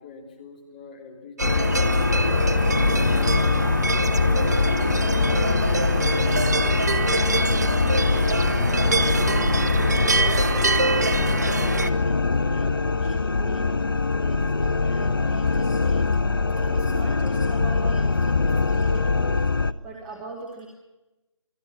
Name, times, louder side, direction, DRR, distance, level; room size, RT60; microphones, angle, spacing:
voice 1, 0.0-5.3, left 4 dB, 15° left, 4 dB, 3.0 m, -47 dB
sound 1, 1.4-19.7, left 4 dB, 45° left, 0.9 m, -22 dB
sound 2, 1.4-11.9, right 3 dB, 35° right, 1.0 m, -26 dB
voice 2, 6.2-13.6 14.0-16.0 16.5-19.5 19.8-20.7, right 3 dB, 5° right, 0 dB, 1.3 m, -42 dB
29.0 x 20.0 x 6.1 m, 1.1 s
figure-of-eight pair, 160°, 16 cm